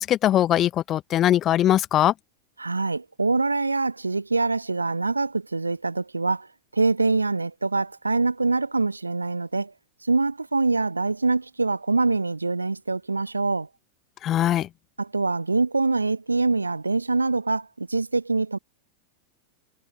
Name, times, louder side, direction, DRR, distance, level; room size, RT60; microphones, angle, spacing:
voice 1, 0.0-2.1 14.2-14.7, left 12 dB, 30° left, 1.0 m, -21 dB
voice 2, 2.6-9.7 10.0-13.7 15.0-18.6, right 3 dB, 80° right, 1.2 m, -24 dB
figure-of-eight pair, 90°, 0 cm